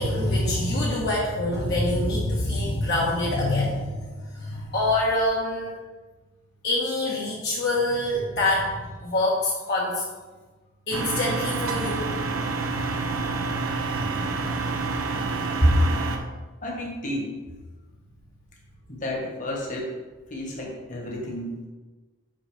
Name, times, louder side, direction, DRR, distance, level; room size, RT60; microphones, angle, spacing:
voice 1, 0.0-5.7 6.6-8.7 9.0-10.0 10.9-12.1, left 1 dB, 55° left, -5 dB, 1.3 m, -25 dB
sound 1, 10.9-16.2, right 3 dB, 85° right, 0.9 m, -28 dB
voice 2, 16.6-17.3 18.9-19.9 20.3-21.7, equal, 35° left, -2 dB, 1.6 m, -28 dB
5.8 x 5.6 x 5.1 m, 1.3 s
head